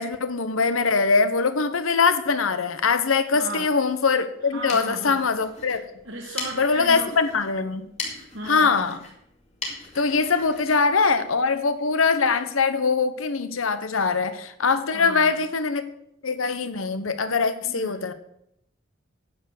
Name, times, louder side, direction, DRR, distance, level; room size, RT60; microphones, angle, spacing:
voice 1, 0.0-5.8 6.5-7.9 8.5-9.0 9.9-15.8 16.2-18.1, left 4 dB, 90° left, 11 dB, 0.9 m, -22 dB
voice 2, 3.3-3.7 4.5-5.2 6.0-7.1 8.3-8.9 14.9-15.4 17.6-18.1, right 1 dB, 75° right, 0 dB, 1.7 m, -35 dB
sound 1, 4.4-11.9, left 3 dB, 35° left, 2.3 m, -40 dB
9.8 x 6.9 x 6.6 m, 0.76 s
head